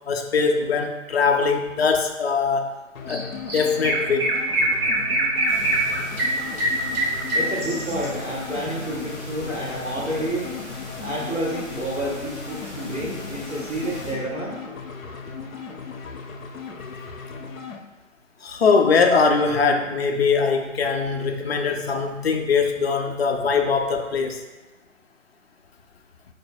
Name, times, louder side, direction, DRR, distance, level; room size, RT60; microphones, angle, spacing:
voice 1, 0.1-2.7 3.1-3.3 3.5-4.4 18.4-24.4, left 5 dB, 50° left, 4 dB, 0.5 m, -21 dB
sound 1, 3.0-17.8, left 5 dB, 85° left, 0.6 m, -37 dB
Chirp tweet, 3.1-3.2 3.5-8.1, right 1 dB, 45° right, 0.9 m, -23 dB
sound 2, 5.5-14.1, left 1 dB, 15° left, 0.9 m, -40 dB
voice 2, 7.3-10.5 11.0-14.6, right 1 dB, 10° right, -13 dB, 0.6 m, -29 dB
4.8 x 2.1 x 4.4 m, 1.2 s
hypercardioid pair, 160°, 40 cm